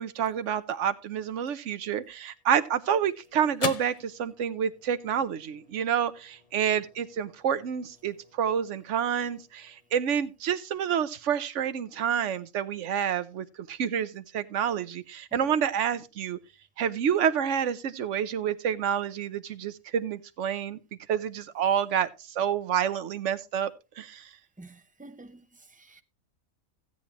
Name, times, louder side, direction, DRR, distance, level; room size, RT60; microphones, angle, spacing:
voice 1, 0.0-16.4 16.8-20.8 21.1-23.7 24.0-24.3, right 8 dB, 60° right, 1.1 m, -28 dB
sound 1, 2.3-10.9, left 5 dB, 45° left, 0.5 m, -43 dB
voice 2, 24.6-26.0, right 2 dB, 10° right, 0.4 m, -49 dB
15.5 x 8.7 x 2.9 m
omnidirectional pair, 1.5 m